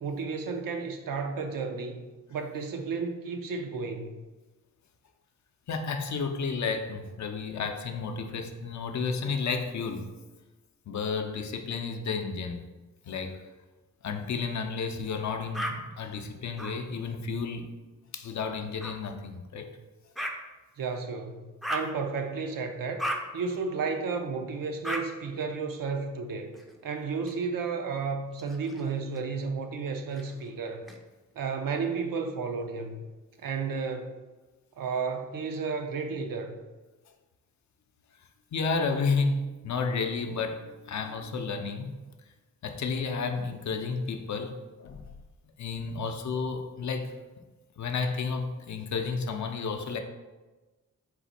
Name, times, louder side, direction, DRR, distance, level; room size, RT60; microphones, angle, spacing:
voice 1, 0.0-2.0 2.3-4.1 20.8-23.1 23.3-26.5 26.8-30.8 31.4-33.0 33.4-34.1 34.8-36.6, right 4 dB, 85° right, 5 dB, 0.6 m, -32 dB
voice 2, 5.7-10.1 10.9-12.6 13.1-13.4 14.0-17.7 18.1-19.7 38.5-41.9 42.6-45.1 45.6-47.1 47.8-50.0, left 4 dB, 60° left, 5 dB, 0.5 m, -32 dB
sound 1, 15.5-15.7 16.6-16.7 18.8-18.9 20.2-20.3 21.6-21.9 23.0-23.2 24.8-25.0 26.5-27.3 28.3-29.2 30.1-31.0, equal, ahead, 0.4 m, -35 dB
4.0 x 2.5 x 4.1 m, 1.2 s
wide cardioid pair, 95°, 32 cm